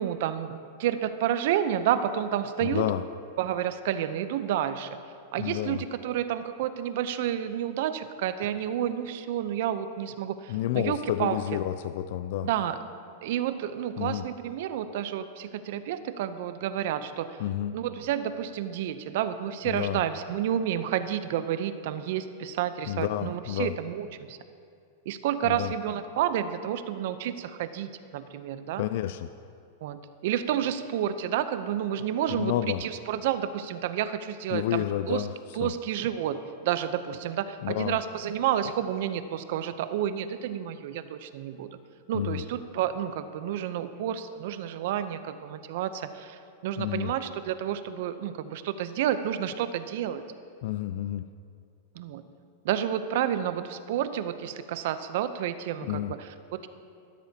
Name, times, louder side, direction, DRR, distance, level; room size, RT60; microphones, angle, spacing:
voice 1, 0.0-2.9 3.4-4.9 5.3-11.4 12.4-12.8 13.2-17.4 17.7-24.4 25.1-28.8 29.8-35.3 35.5-41.7 42.1-50.2 51.9-52.2 52.6-56.3, right 10 dB, 65° right, 11 dB, 0.7 m, -30 dB
voice 2, 2.6-3.0 5.4-5.8 10.5-12.5 14.0-14.2 17.4-17.8 19.7-20.0 22.9-23.7 25.4-25.7 28.8-29.3 32.4-32.8 34.5-35.3 35.6-35.7 37.6-38.0 42.1-42.4 46.8-47.1 50.6-51.3 55.9-56.1, left 13 dB, 65° left, 12 dB, 0.3 m, -30 dB
15.0 x 12.5 x 2.9 m, 2.4 s
hypercardioid pair, 125°, 0 cm